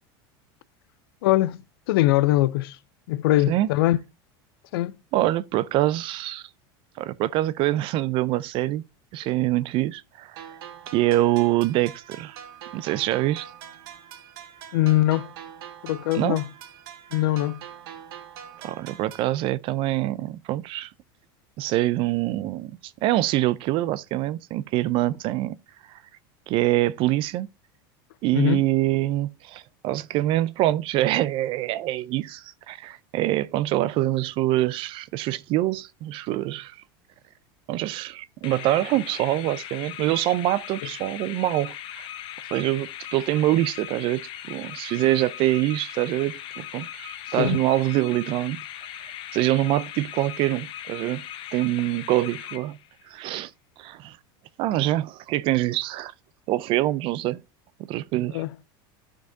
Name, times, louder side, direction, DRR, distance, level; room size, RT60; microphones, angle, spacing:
voice 1, 1.2-1.6 1.9-2.8 3.1-4.0 4.7-4.9 14.7-15.3 15.8-16.5 17.1-17.6 28.3-28.6 47.4-47.6 58.3-58.5, left 15 dB, 80° left, 0.5 m, -22 dB
voice 2, 5.1-6.5 7.0-8.8 9.1-10.4 10.9-12.4 12.7-13.5 16.1-16.4 18.6-20.9 21.6-25.6 25.9-26.0 26.5-27.5 28.2-36.8 37.7-42.1 42.5-44.2 44.5-48.6 49.3-51.2 51.5-52.8 53.1-53.5 53.8-54.2 54.6-56.1 56.5-57.4 57.8-58.4, right 15 dB, 45° right, 0.4 m, -25 dB
sound 1, 10.4-19.4, right 9 dB, 80° right, 1.0 m, -43 dB
sound 2, 38.4-53.1, left 11 dB, 45° left, 0.7 m, -39 dB
12.0 x 4.6 x 2.6 m
supercardioid pair, 130°, 12 cm